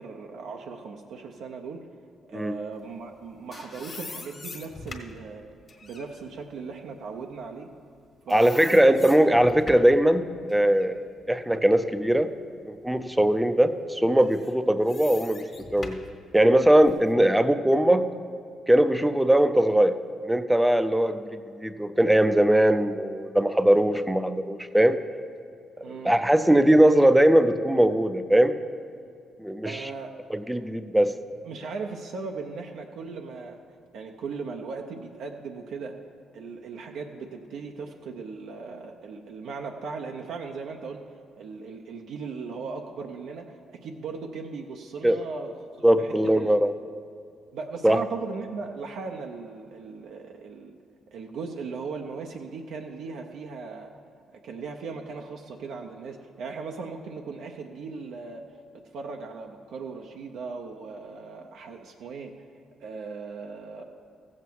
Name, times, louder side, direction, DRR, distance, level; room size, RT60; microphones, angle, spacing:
voice 1, 0.0-1.8 2.3-5.4 5.8-7.7 8.3-8.8 25.8-26.1 29.6-30.1 31.4-33.6 33.9-35.9 36.3-46.5 47.5-50.7 51.1-53.9 54.4-58.4 58.9-62.3 62.8-63.8, right 4 dB, 80° right, 2 dB, 0.7 m, -38 dB
sound 1, 3.1-8.0 8.3-10.0 10.5-12.5 12.9-13.1 14.1-17.1, left 3 dB, 40° left, 1.5 m, -44 dB
voice 2, 8.3-11.0 11.3-12.3 12.6-15.5 15.7-16.0 16.3-18.0 18.7-20.0 20.2-25.0 26.0-28.5 29.4-29.9 30.3-31.1 45.0-45.2 45.8-46.7 47.8-48.0, right 1 dB, 5° right, 10 dB, 0.5 m, -20 dB
15.0 x 7.4 x 4.6 m, 2.4 s
cardioid pair, 90°, 0 cm